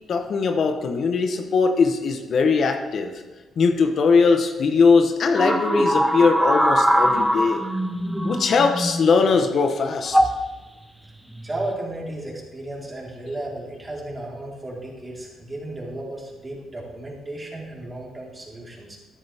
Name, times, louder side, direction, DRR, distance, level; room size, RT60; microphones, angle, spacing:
voice 1, 0.1-3.1 3.6-7.6 8.2-10.2, left 4 dB, 55° left, 5 dB, 1.0 m, -20 dB
sound 1, 5.4-9.2 10.1-10.4 11.4-11.7, equal, 5° right, 1.0 m, -21 dB
voice 2, 11.4-19.0, right 1 dB, 20° right, -4 dB, 4.1 m, -34 dB
13.0 x 10.5 x 3.6 m, 1.2 s
cardioid pair, 90°, 0 cm